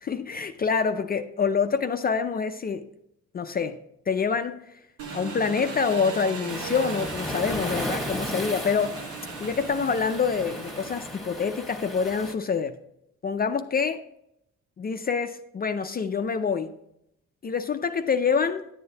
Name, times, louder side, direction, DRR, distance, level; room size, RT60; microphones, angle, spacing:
voice 1, 0.0-2.9 3.3-3.8 4.1-4.6 5.1-8.9 9.4-12.7 13.2-14.0 14.8-16.8 17.4-18.6, left 5 dB, 30° left, 0.4 m, -26 dB
Engine, 5.0-11.5, right 5 dB, 90° right, 1.3 m, -38 dB
Waves surf, 6.5-12.3, left 1 dB, ahead, 1.4 m, -35 dB
11.0 x 7.7 x 2.8 m
cardioid pair, 90°, 30 cm